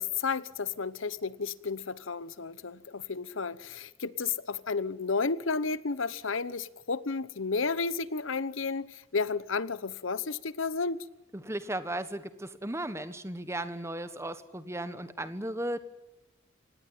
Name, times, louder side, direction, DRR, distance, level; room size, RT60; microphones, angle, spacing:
voice 1, 0.0-11.0, left 4 dB, 80° left, 1.0 m, -32 dB
voice 2, 11.3-15.8, right 1 dB, 15° right, 1.3 m, -36 dB
25.5 x 19.0 x 9.4 m
head